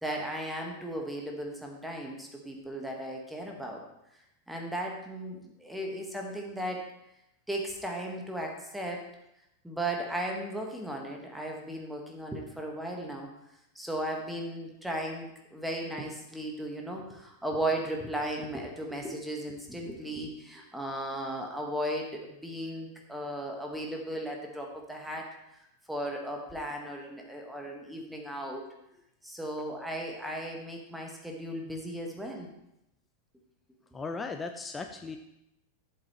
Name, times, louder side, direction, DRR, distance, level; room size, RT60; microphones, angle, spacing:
voice 1, 0.0-3.8 4.5-6.8 7.5-9.0 9.6-13.3 13.7-25.3 25.9-28.6 29.2-32.5, right 1 dB, 5° right, 0 dB, 1.6 m, -36 dB
voice 2, 33.9-35.2, left 4 dB, 15° left, 6 dB, 0.6 m, -37 dB
12.0 x 7.9 x 3.2 m, 0.84 s
figure-of-eight pair, 90°, 0 cm